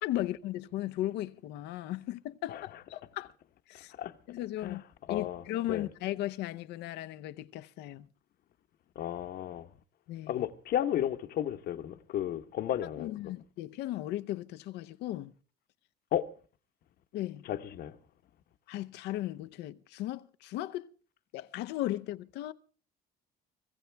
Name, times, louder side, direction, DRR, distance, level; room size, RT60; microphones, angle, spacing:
voice 1, 0.0-3.3 3.7-3.9 4.3-4.8 5.1-8.1 10.1-10.4 13.0-15.3 17.1-17.4 18.7-20.9 21.3-22.5, left 14 dB, 85° left, 0.7 m, -36 dB
voice 2, 5.1-5.4 5.7-5.9 8.9-9.7 10.3-13.3 16.1-16.3 17.5-18.0, left 11 dB, 65° left, 1.1 m, -33 dB
25.0 x 16.0 x 3.4 m
cardioid pair, 110°, 17 cm